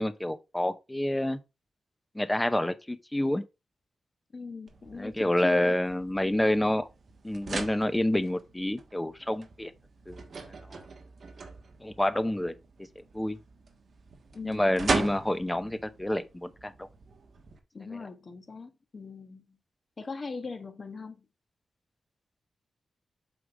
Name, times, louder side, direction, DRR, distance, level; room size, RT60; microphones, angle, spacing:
voice 1, 0.0-1.4 2.1-3.4 5.0-6.9 7.2-9.7 10.1-10.8 11.8-12.5 13.1-13.4 14.4-16.9, left 1 dB, 10° left, 0.7 m, -28 dB
voice 2, 4.3-5.8 14.3-14.9 17.7-19.6 20.0-21.2, left 4 dB, 35° left, 1.3 m, -40 dB
sound 1, 4.7-17.6, right 4 dB, 50° right, 1.3 m, -39 dB
8.1 x 3.8 x 4.8 m
wide cardioid pair, 160°, 0 cm